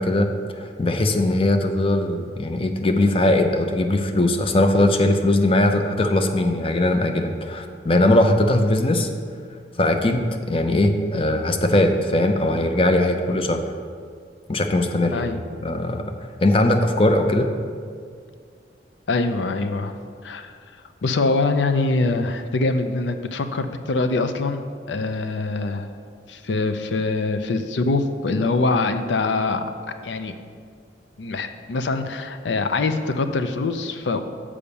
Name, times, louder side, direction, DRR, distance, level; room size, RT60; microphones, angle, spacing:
voice 1, 0.0-9.1 9.8-13.6 14.5-15.3 15.6-16.0 16.4-17.5, left 1 dB, 30° left, 6 dB, 0.5 m, -20 dB
voice 2, 15.1-15.4 19.1-19.9 20.2-20.5 21.0-25.9 26.3-29.6 30.0-30.3 31.2-34.2, left 3 dB, 90° left, 8 dB, 0.5 m, -23 dB
7.0 x 4.9 x 6.9 m, 2.1 s
head